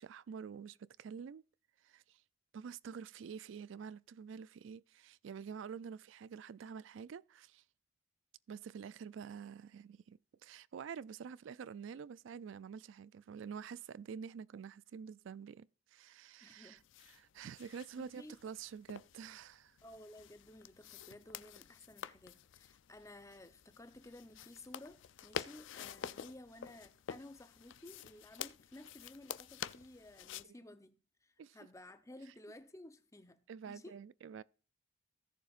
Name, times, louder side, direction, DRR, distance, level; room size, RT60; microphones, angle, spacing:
voice 1, 0.0-1.4 1.8-2.2 2.5-7.6 8.5-19.8 30.4-30.6 31.4-31.6 32.3-32.4 33.5-34.4, right 6 dB, 65° right, 0.3 m, -48 dB
voice 2, 16.4-16.8 17.9-18.3 19.8-33.4 33.7-34.0, left 1 dB, 15° left, 0.7 m, -55 dB
sound 1, 16.8-30.4, left 9 dB, 65° left, 0.4 m, -49 dB
16.0 x 7.1 x 2.5 m
head